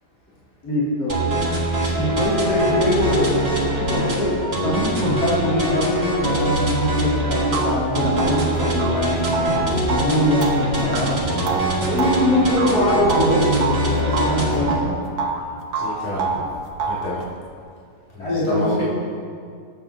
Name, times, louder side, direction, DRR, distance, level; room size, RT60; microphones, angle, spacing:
voice 1, 0.6-1.2 2.0-3.3 3.7-4.3 4.6-9.5 9.9-11.2 11.8-14.9 18.2-18.8, left 1 dB, 70° left, -9 dB, 3.1 m, -22 dB
sound 1, 1.1-14.8, right 1 dB, 40° right, 1.9 m, -23 dB
voice 2, 1.8-2.1 11.5-11.6 15.8-16.4 16.9-17.2 18.1-18.8, left 1 dB, 10° left, -9 dB, 2.1 m, -29 dB
sound 2, 2.1-7.1, left 1 dB, 35° left, 0.3 m, -32 dB
sound 3, 7.0-7.1 7.5-13.8 14.1-15.4 15.7-17.1, right 4 dB, 75° right, 1.4 m, -27 dB
20.5 x 7.3 x 2.8 m, 2.2 s
omnidirectional pair, 1.7 m